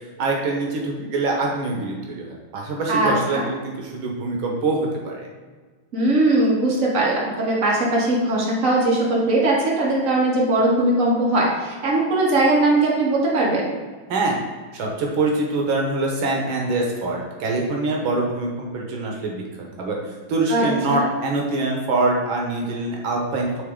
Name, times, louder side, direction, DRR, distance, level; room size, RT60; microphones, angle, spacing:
voice 1, 0.2-5.3 14.1-14.4 14.7-19.4 19.8-20.0 20.3-23.6, right 2 dB, 85° right, 0 dB, 1.8 m, -24 dB
voice 2, 2.9-3.4 5.9-13.7 20.5-21.1, right 2 dB, 45° right, -5 dB, 1.8 m, -20 dB
8.3 x 3.7 x 3.7 m, 1.4 s
omnidirectional pair, 2.1 m